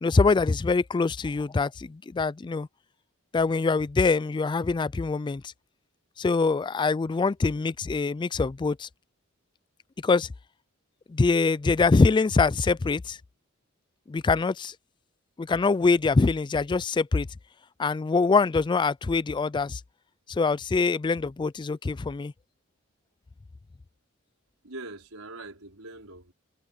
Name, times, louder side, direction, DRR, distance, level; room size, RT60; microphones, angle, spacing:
voice 1, 0.0-2.7 3.3-5.4 6.2-8.9 10.0-10.3 11.1-13.2 14.1-14.7 15.4-17.3 17.8-19.8 20.3-22.3, left 4 dB, 20° left, 0.3 m, -24 dB
voice 2, 24.6-26.3, right 2 dB, 85° right, 4.8 m, -42 dB
head